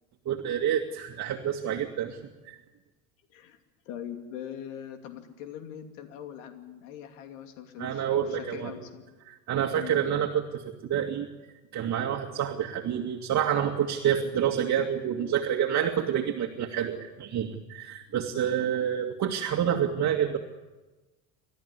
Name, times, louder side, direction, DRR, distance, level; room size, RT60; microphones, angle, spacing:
voice 1, 0.3-2.2 2.5-2.6 7.8-8.8 9.3-11.3 11.7-20.4, right 9 dB, 45° right, 2 dB, 2.3 m, -28 dB
voice 2, 3.8-9.0 9.8-10.0, left 9 dB, 80° left, 5 dB, 2.8 m, -42 dB
30.0 x 13.5 x 9.8 m, 1.2 s
supercardioid pair, 90°, 39 cm